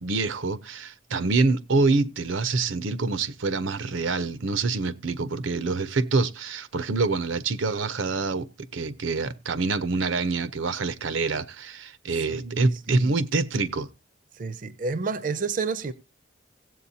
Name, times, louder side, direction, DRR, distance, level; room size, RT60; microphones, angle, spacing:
voice 1, 0.0-13.9, right 3 dB, 85° right, 0.7 m, -26 dB
voice 2, 12.2-13.1 14.4-15.9, right 4 dB, 45° right, 0.5 m, -30 dB
17.0 x 7.8 x 2.7 m
head